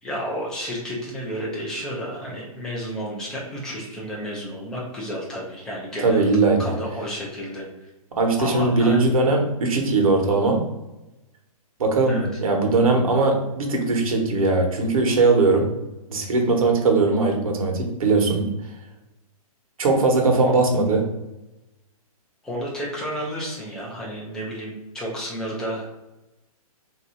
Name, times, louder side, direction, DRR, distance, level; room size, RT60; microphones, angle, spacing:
voice 1, 0.0-6.3 6.6-7.9 8.4-9.0 12.1-12.3 20.4-20.5 22.4-26.0, equal, 5° left, -4 dB, 0.4 m, -31 dB
voice 2, 6.0-6.6 8.1-10.6 11.8-15.7 16.1-18.5 19.8-21.0, right 3 dB, 65° right, 2 dB, 1.2 m, -20 dB
3.4 x 2.7 x 4.2 m, 0.99 s
hypercardioid pair, 170°, 19 cm